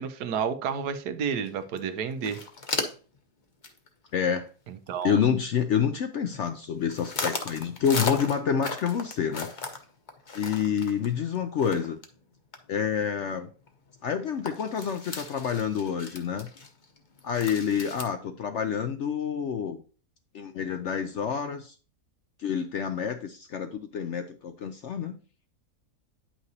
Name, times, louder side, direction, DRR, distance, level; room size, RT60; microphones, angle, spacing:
voice 1, 0.0-2.4 4.7-5.4, right 7 dB, 80° right, 1.3 m, -31 dB
sound 1, 1.5-1.6 1.8-1.9 2.1-3.2 3.6-3.9 4.2-4.3 4.7-5.3 5.9-6.5 6.9-12.2 12.5-12.6 13.1-13.2 13.7-13.8 14.0-14.1 14.5-18.0, left 4 dB, 35° left, 0.9 m, -35 dB
voice 2, 4.1-4.5 5.0-9.5 10.3-12.0 12.7-13.5 14.0-16.5 17.2-19.8 20.3-21.7 22.4-25.2, left 7 dB, 65° left, 0.7 m, -28 dB
9.4 x 5.8 x 2.8 m
omnidirectional pair, 1.7 m